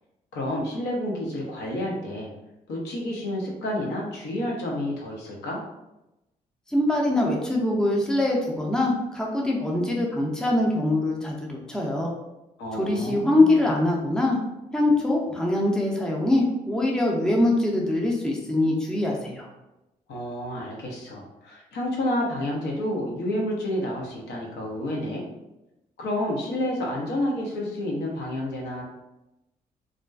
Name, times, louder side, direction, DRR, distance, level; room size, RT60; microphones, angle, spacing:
voice 1, 0.3-2.3 2.7-5.6 12.6-13.7 20.1-25.2 26.0-28.8, left 1 dB, 60° left, -2 dB, 0.7 m, -30 dB
voice 2, 6.7-12.1 12.7-14.4 14.7-19.5, left 1 dB, 5° left, -1 dB, 0.6 m, -23 dB
2.4 x 2.2 x 2.3 m, 0.94 s
figure-of-eight pair, 40°, 20 cm